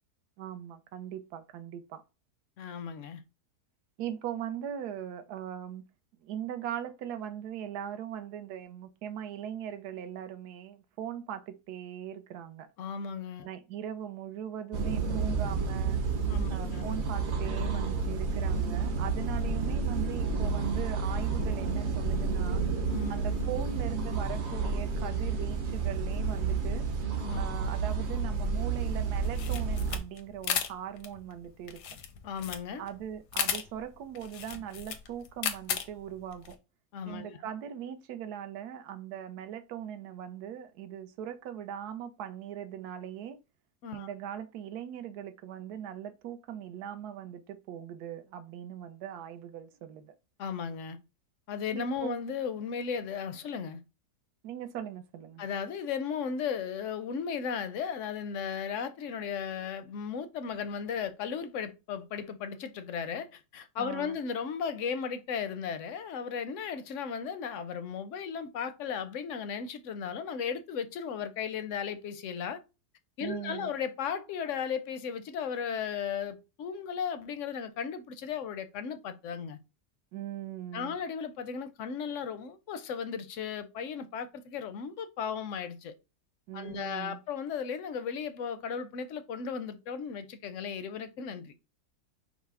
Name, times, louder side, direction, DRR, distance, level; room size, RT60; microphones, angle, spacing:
voice 1, 0.4-2.0 4.0-5.8 6.2-12.7 13.4-16.0 16.5-22.6 23.1-26.9 27.4-31.8 32.8-36.6 37.1-43.4 43.9-50.1 51.7-52.2 54.4-55.4 63.8-64.2 73.2-73.7 80.1-81.0 86.5-87.2, right 10 dB, 75° right, 1.2 m, -40 dB
voice 2, 2.6-3.2 12.8-13.5 16.3-16.9 22.9-23.1 27.2-27.4 32.2-32.9 36.9-37.4 43.8-44.1 50.4-51.0 51.5-53.8 55.4-72.6 73.2-79.6 80.7-85.9 86.5-91.5, left 7 dB, 65° left, 0.8 m, -35 dB
sound 1, 14.7-30.0, right 4 dB, 50° right, 1.0 m, -30 dB
sound 2, 29.2-36.5, left 9 dB, 85° left, 1.3 m, -35 dB
5.5 x 2.0 x 4.7 m
omnidirectional pair, 1.7 m